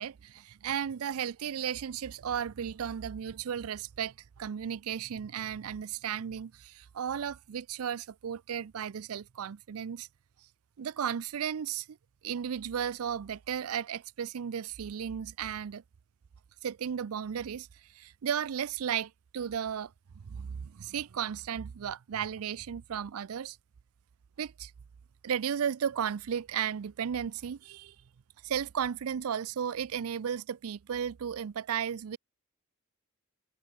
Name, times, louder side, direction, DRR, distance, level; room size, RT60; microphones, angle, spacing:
voice 1, 0.0-10.1 10.8-12.0 12.2-15.8 16.6-17.7 17.9-23.6 24.4-24.7 25.2-27.9 28.4-32.2, right 8 dB, 80° right, 0.4 m, -34 dB
open air
head